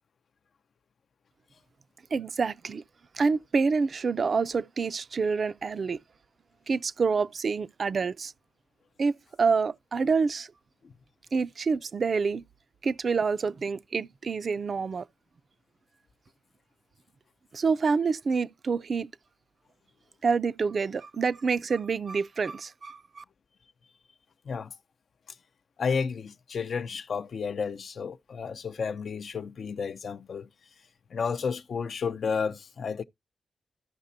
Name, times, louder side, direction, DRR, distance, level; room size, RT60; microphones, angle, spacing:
voice 1, 2.1-2.8 3.1-6.0 6.7-8.3 9.0-10.5 11.3-12.4 12.8-15.1 17.5-19.1 20.2-23.2, right 5 dB, 50° right, 0.4 m, -27 dB
voice 2, 25.8-30.5 31.1-33.0, left 5 dB, 60° left, 0.5 m, -32 dB
14.0 x 5.8 x 2.6 m
wide cardioid pair, 110°, 0 cm